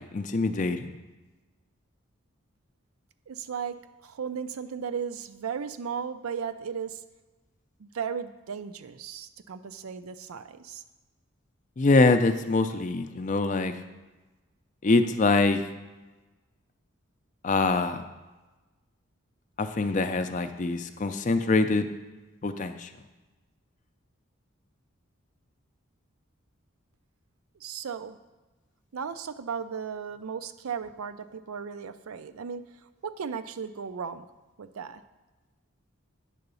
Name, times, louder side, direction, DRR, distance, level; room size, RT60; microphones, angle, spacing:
voice 1, 0.1-0.9 11.8-13.7 14.8-15.6 17.4-18.0 19.6-21.9 22.4-22.9, left 3 dB, 35° left, 9 dB, 0.4 m, -24 dB
voice 2, 3.3-7.0 7.8-10.8 27.6-28.2 28.9-32.6 33.0-34.3 34.6-35.0, right 6 dB, 85° right, 11 dB, 0.5 m, -36 dB
9.1 x 3.9 x 6.8 m, 1.2 s
head